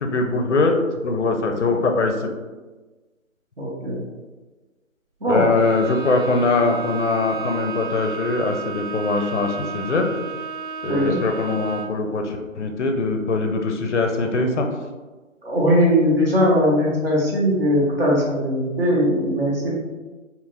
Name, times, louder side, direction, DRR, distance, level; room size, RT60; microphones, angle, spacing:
voice 1, 0.0-2.3 5.3-10.1 10.8-14.7, left 3 dB, 60° left, 4 dB, 0.5 m, -22 dB
voice 2, 3.6-4.0 5.2-5.5 10.9-11.2 15.4-19.8, equal, 45° right, -5 dB, 0.9 m, -20 dB
Bowed string instrument, 5.5-12.1, right 4 dB, 70° right, 0.5 m, -32 dB
2.8 x 2.5 x 2.4 m, 1.2 s
figure-of-eight pair, 155°, 41 cm